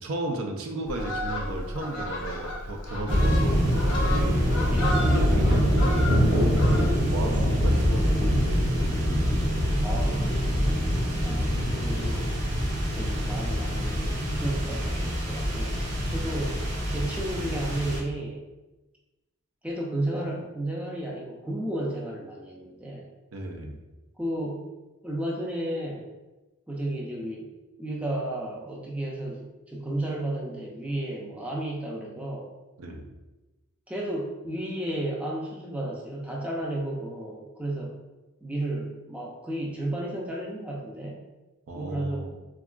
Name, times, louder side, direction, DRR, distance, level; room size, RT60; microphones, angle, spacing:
voice 1, 0.0-4.5 5.0-6.0 7.0-8.4 23.3-23.8 32.8-33.1 41.7-42.3, right 1 dB, 80° right, 3 dB, 0.4 m, -34 dB
Fowl, 0.8-7.2 7.5-7.8, left 1 dB, 60° left, 0.6 m, -32 dB
sound 1, 3.1-18.0, equal, 55° right, 0.8 m, -24 dB
voice 2, 4.7-5.0 7.3-7.7 9.8-11.5 11.8-12.4 12.9-18.4 19.6-23.1 24.2-24.7 25.0-26.1 26.7-27.5 27.8-32.5 33.9-38.0 38.4-41.2 41.7-42.3, right 1 dB, 5° right, -2 dB, 0.3 m, -33 dB
3.6 x 2.3 x 2.3 m, 1.1 s
head